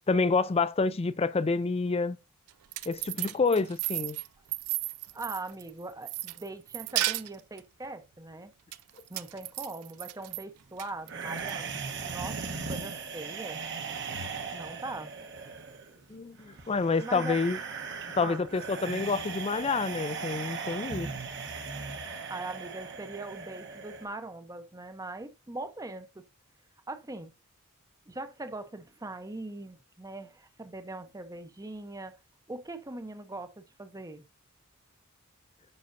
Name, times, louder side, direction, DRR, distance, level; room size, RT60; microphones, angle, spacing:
voice 1, 0.1-2.2 2.9-4.2 16.1-17.6 18.2-21.1, left 4 dB, 25° left, 0.4 m, -28 dB
sound 1, 2.5-5.7 6.1-7.6 8.7-10.4 10.8-11.5, right 16 dB, 85° right, 0.4 m, -34 dB
voice 2, 5.1-8.5 9.1-12.4 12.7-13.6 14.5-15.1 17.0-17.4 18.2-18.5 22.3-26.2 26.9-27.3 28.1-32.2 32.5-34.2, right 2 dB, 15° right, 0.7 m, -41 dB
sound 2, 11.1-24.1, right 5 dB, 55° right, 1.1 m, -38 dB
9.6 x 5.5 x 2.6 m
head